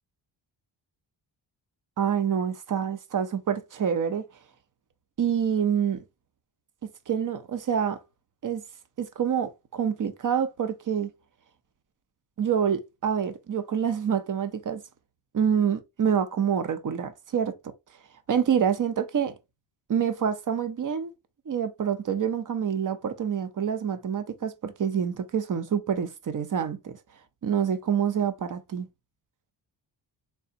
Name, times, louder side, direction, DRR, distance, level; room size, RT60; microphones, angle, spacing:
voice 1, 2.0-4.2 5.2-6.0 7.1-8.0 8.4-8.6 9.0-11.1 12.4-14.8 15.3-17.5 18.3-19.3 19.9-21.1 21.5-26.9 27.4-28.9, right 8 dB, 45° right, 0.6 m, -27 dB
3.9 x 3.4 x 2.6 m
wide cardioid pair, 125°, 44 cm